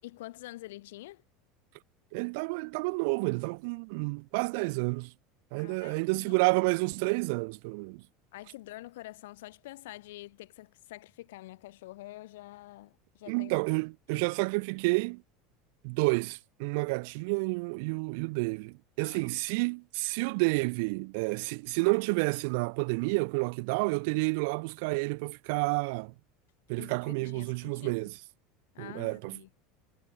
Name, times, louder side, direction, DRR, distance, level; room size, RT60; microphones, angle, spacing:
voice 1, 0.0-1.2 5.6-6.3 8.3-13.5 14.1-14.2 19.0-19.2 26.8-28.1 28.7-29.5, left 17 dB, 90° left, 6.7 m, -47 dB
voice 2, 2.1-5.1 5.5-8.0 13.3-15.2 15.8-26.1 26.7-28.1 28.8-29.4, right 30 dB, 65° right, 1.9 m, -30 dB
supercardioid pair, 150°, 0 cm